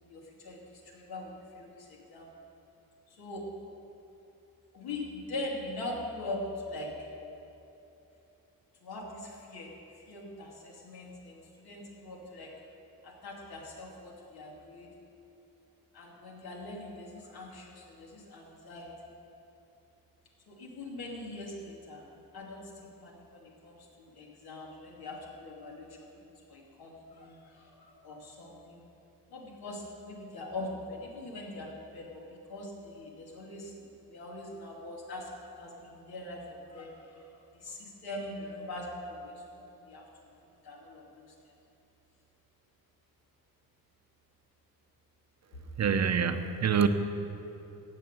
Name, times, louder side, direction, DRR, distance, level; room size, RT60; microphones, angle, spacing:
voice 1, 0.0-2.3 3.1-3.5 4.7-7.1 8.8-12.6 13.0-14.9 15.9-19.0 20.5-28.8 29.3-33.7 34.1-35.3 35.6-41.3 45.5-45.6, left 2 dB, 85° left, -2 dB, 2.8 m, -42 dB
voice 2, 45.8-46.9, right 7 dB, 45° right, 9 dB, 0.7 m, -26 dB
15.5 x 6.0 x 9.0 m, 2.9 s
wide cardioid pair, 130°, 36 cm